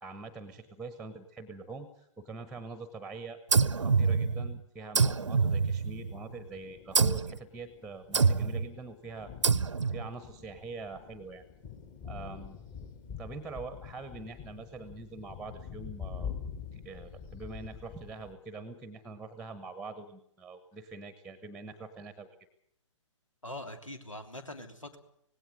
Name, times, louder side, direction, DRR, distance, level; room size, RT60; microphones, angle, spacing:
voice 1, 0.0-3.4 3.8-9.3 9.9-11.4 12.0-12.6 13.2-16.3 16.7-22.3, right 3 dB, 5° right, 12 dB, 1.1 m, -44 dB
sound 1, 3.5-4.6 4.9-6.2 6.9-7.4 8.1-8.7 9.4-10.1, right 5 dB, 70° right, 0.8 m, -26 dB
Thunder, 5.8-18.3, left 7 dB, 25° left, 1.9 m, -45 dB
voice 2, 23.4-25.0, left 1 dB, 80° left, 8 dB, 3.1 m, -43 dB
18.5 x 17.0 x 9.7 m, 0.74 s
figure-of-eight pair, 125°, 16 cm